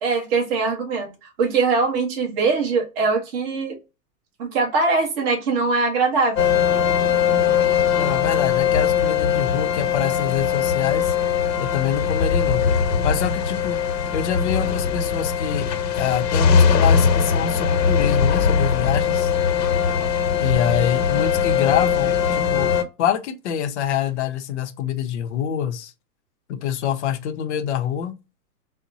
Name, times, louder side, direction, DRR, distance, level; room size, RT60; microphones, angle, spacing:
voice 1, 0.0-1.1 1.4-3.8 4.4-6.5, right 4 dB, 40° right, 1.2 m, -22 dB
sound 1, 6.4-22.8, left 7 dB, 90° left, 1.1 m, -20 dB
voice 2, 8.0-11.1 11.6-12.6 13.0-13.8 14.1-15.7 16.0-19.3 20.4-22.7 23.0-25.9 26.5-28.1, left 9 dB, 45° left, 0.6 m, -25 dB
4.0 x 2.1 x 2.6 m
hypercardioid pair, 155°, 48 cm